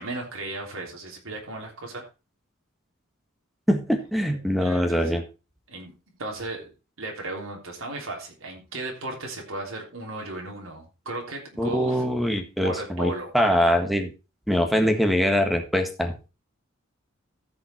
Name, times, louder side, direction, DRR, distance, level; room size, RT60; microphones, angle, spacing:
voice 1, 0.0-2.1 4.3-5.2 5.7-5.9 6.2-6.7 7.0-12.0 12.6-13.3, right 2 dB, 85° right, 0 dB, 3.3 m, -35 dB
voice 2, 3.7-5.2 11.6-14.1 14.5-16.1, equal, ahead, 6 dB, 1.6 m, -23 dB
14.5 x 5.8 x 4.4 m, 0.30 s
head